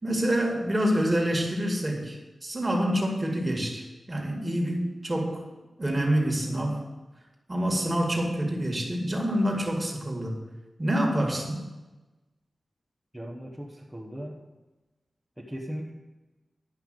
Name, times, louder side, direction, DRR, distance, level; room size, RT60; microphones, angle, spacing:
voice 1, 0.0-5.4 5.8-6.8 7.5-10.4 10.8-11.6, equal, 25° right, 0 dB, 2.3 m, -27 dB
voice 2, 13.1-14.4 15.4-15.9, equal, 5° right, -4 dB, 1.3 m, -38 dB
11.5 x 5.6 x 7.8 m, 1.1 s
wide cardioid pair, 120°, 0 cm